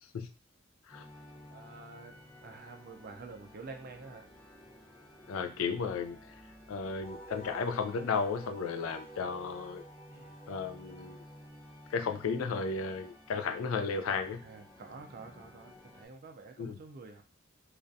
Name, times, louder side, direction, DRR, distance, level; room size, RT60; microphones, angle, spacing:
sound 1, 0.9-16.1, left 1 dB, 20° left, 0.8 m, -54 dB
voice 1, 1.5-4.3 10.1-10.3 14.4-17.2, right 3 dB, 50° right, 4 dB, 0.4 m, -49 dB
voice 2, 5.3-6.2 6.7-9.8 10.5-11.2 11.9-14.4 16.6-16.8, left 5 dB, 85° left, 8 dB, 0.4 m, -34 dB
Wind instrument woodwind instrument, 7.0-11.8, right 2 dB, 50° left, 0.9 m, -50 dB
2.4 x 2.1 x 2.6 m, 0.35 s
head